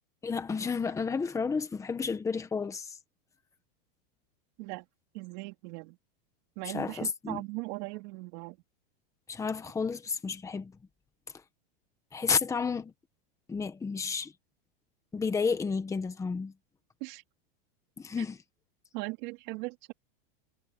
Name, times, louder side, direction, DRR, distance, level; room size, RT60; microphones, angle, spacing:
voice 1, 0.2-3.0 6.6-7.4 9.3-10.7 12.1-12.9 13.5-14.3 15.1-16.5 18.0-18.4, left 5 dB, 10° left, 1.5 m, -31 dB
voice 2, 5.1-6.0 6.6-8.6 17.0-17.2 18.9-19.9, right 26 dB, 50° right, 4.0 m, -39 dB
supercardioid pair, 155°, 29 cm